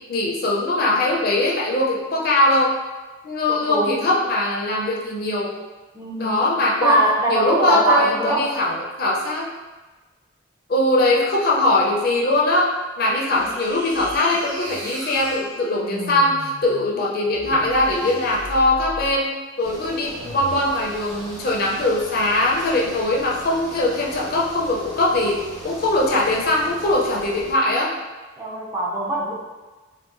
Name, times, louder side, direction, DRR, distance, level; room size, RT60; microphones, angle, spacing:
voice 1, 0.0-2.7 3.2-5.5 6.2-7.0 7.3-9.5 10.7-12.7 13.0-19.3 19.6-27.9, left 2 dB, 50° left, -3 dB, 0.5 m, -21 dB
voice 2, 3.5-4.1 5.9-6.4 6.8-8.5 28.4-29.3, right 1 dB, 15° right, -5 dB, 0.4 m, -21 dB
sound 1, 13.3-19.2 20.1-20.8, right 1 dB, 70° right, 0.9 m, -37 dB
sound 2, 19.6-27.5, equal, 35° right, 0.8 m, -39 dB
3.6 x 2.2 x 2.5 m, 1.3 s
head